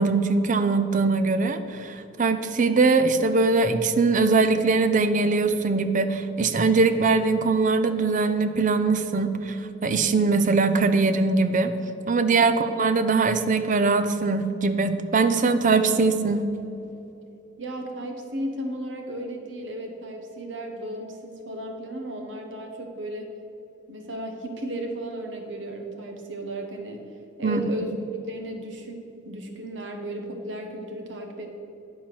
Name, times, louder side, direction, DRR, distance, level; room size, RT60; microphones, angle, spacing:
voice 1, 0.0-9.6 9.8-11.7 12.1-16.4 27.4-27.7, right 3 dB, 45° right, 9 dB, 0.5 m, -22 dB
voice 2, 17.6-23.3 23.9-27.1 27.4-28.0 28.3-31.6, right 1 dB, 85° right, 3 dB, 1.1 m, -35 dB
10.0 x 4.4 x 6.1 m, 2.9 s
head